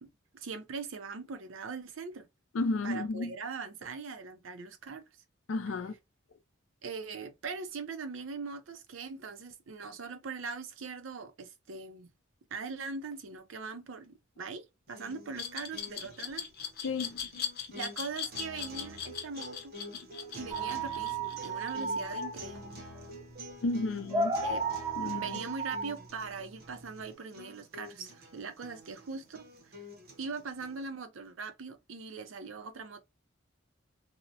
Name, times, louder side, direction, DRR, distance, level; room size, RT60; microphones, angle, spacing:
voice 1, 0.0-2.3 2.8-5.0 6.8-12.1 12.5-16.5 17.7-19.7 20.4-22.8 24.4-24.7 25.0-29.8 30.2-33.0, right 4 dB, 85° right, 0.5 m, -41 dB
voice 2, 2.5-3.3 5.5-5.9 16.8-17.4 23.6-24.5 25.0-25.4, left 3 dB, 85° left, 0.4 m, -33 dB
sound 1, 14.9-30.9, equal, 50° right, 0.7 m, -49 dB
Glass, 15.4-22.2, left 8 dB, 50° left, 0.7 m, -39 dB
sound 2, 20.5-27.1, right 3 dB, 15° right, 0.5 m, -34 dB
2.8 x 2.0 x 2.6 m
head